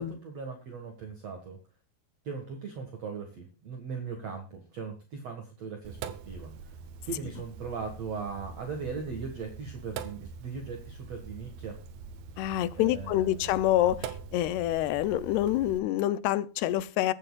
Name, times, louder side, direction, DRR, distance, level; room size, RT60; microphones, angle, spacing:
voice 1, 0.0-1.6 2.2-6.8 7.1-11.8 12.8-13.5, right 5 dB, 50° right, 2.3 m, -39 dB
Sink (filling or washing), 5.8-15.8, right 6 dB, 70° right, 2.5 m, -44 dB
voice 2, 12.4-17.1, left 13 dB, 80° left, 2.7 m, -27 dB
22.5 x 8.8 x 2.4 m
omnidirectional pair, 4.7 m